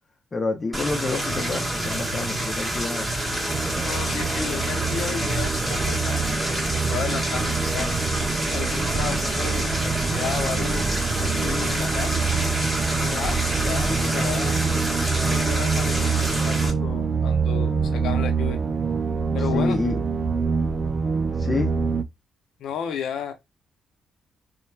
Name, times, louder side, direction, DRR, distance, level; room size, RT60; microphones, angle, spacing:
voice 1, 0.3-3.1 19.5-20.0 21.4-21.7, left 3 dB, 30° left, 0.6 m, -27 dB
sound 1, 0.7-16.7, right 1 dB, 10° right, 1.1 m, -27 dB
sound 2, 3.5-22.0, right 5 dB, 35° right, 0.3 m, -26 dB
voice 2, 3.8-6.2 6.5-7.9 8.5-10.9 11.2-12.3 13.0-14.6 15.3-18.6 19.3-19.8 22.6-23.3, left 8 dB, 80° left, 0.6 m, -33 dB
2.9 x 2.1 x 2.2 m
cardioid pair, 90°, 0 cm